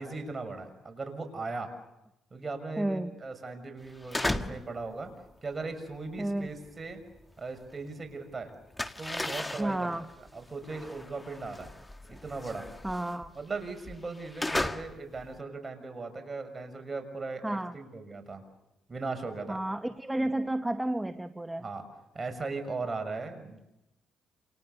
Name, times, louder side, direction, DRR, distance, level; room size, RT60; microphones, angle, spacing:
voice 1, 0.0-1.7 2.3-5.1 5.4-7.0 7.4-8.5 9.0-9.9 10.3-11.7 12.1-12.7 13.3-18.4 18.9-19.6 21.6-21.8 22.1-23.6, right 3 dB, 30° right, 6 dB, 6.6 m, -38 dB
voice 2, 2.8-3.1 6.2-6.5 9.6-10.1 12.8-13.3 17.4-17.8 19.5-21.7, right 1 dB, 10° right, 9 dB, 1.1 m, -31 dB
sound 1, 3.9-4.7 5.0-8.0 8.2-15.4, left 1 dB, 15° left, 1.7 m, -36 dB
29.0 x 28.0 x 7.0 m, 0.91 s
cardioid pair, 90°, 0 cm